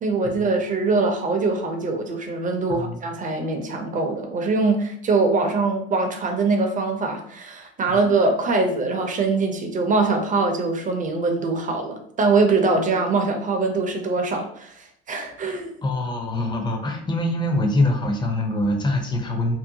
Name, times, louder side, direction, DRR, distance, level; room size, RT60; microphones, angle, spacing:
voice 1, 0.0-15.7, right 3 dB, 25° right, 4 dB, 0.6 m, -23 dB
voice 2, 15.8-19.6, left 1 dB, 15° left, 3 dB, 0.6 m, -24 dB
2.7 x 2.0 x 2.7 m, 0.66 s
hypercardioid pair, 80°, 30 cm